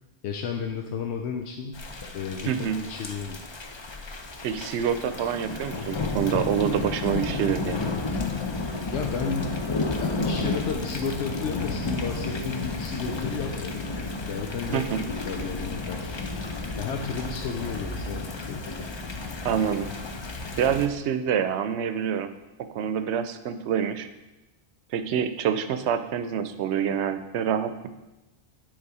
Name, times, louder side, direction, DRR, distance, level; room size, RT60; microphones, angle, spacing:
voice 1, 0.2-1.8 2.1-3.4 8.5-8.6 8.9-9.6 10.0-14.0 14.3-16.4 16.8-18.7, left 6 dB, 90° left, 3 dB, 0.9 m, -33 dB
Thunder / Rain, 1.7-20.9, left 3 dB, 35° left, 0.5 m, -32 dB
voice 2, 2.5-2.8 4.4-7.8 14.7-15.0 19.4-19.9 20.6-22.3 22.7-24.1 24.9-27.7, right 8 dB, 80° right, 10 dB, 0.9 m, -26 dB
9.6 x 3.8 x 4.8 m, 1.0 s
omnidirectional pair, 1.1 m